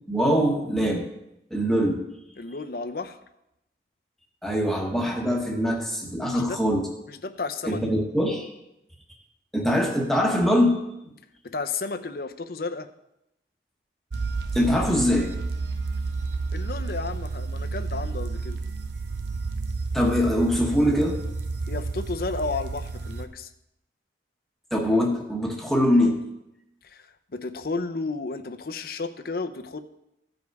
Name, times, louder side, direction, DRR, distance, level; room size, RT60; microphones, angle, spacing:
voice 1, 0.1-1.1 1.5-2.1 4.4-6.9 7.6-8.5 9.5-10.8 11.0-11.1 14.5-15.3 19.9-21.2 24.7-26.2, equal, ahead, -1 dB, 1.1 m, -23 dB
voice 2, 2.4-3.2 6.3-6.6 7.1-7.8 11.4-12.9 16.5-18.6 21.7-23.5 26.8-29.8, left 3 dB, 55° left, 10 dB, 0.6 m, -32 dB
sound 1, 14.1-23.3, right 3 dB, 80° right, 0.7 m, -31 dB
15.0 x 5.3 x 4.7 m, 0.87 s
head